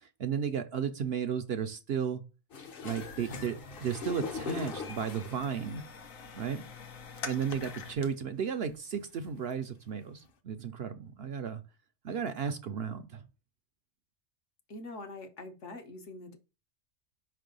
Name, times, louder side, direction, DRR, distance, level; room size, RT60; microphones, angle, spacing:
voice 1, 0.0-2.2 2.8-5.8 6.3-6.6 7.2-11.6 12.0-13.2, right 7 dB, 60° right, 8 dB, 0.7 m, -34 dB
sound 1, 2.5-5.5 6.5-6.6 7.5-8.1 8.7-8.8 9.1-9.5 10.2-10.3, left 5 dB, 50° left, 0.8 m, -41 dB
sound 2, 2.9-7.9, left 5 dB, 90° left, 1.3 m, -46 dB
voice 2, 14.7-16.4, left 2 dB, 65° left, 5 dB, 1.3 m, -44 dB
5.4 x 3.3 x 5.2 m, 0.30 s
omnidirectional pair, 1.3 m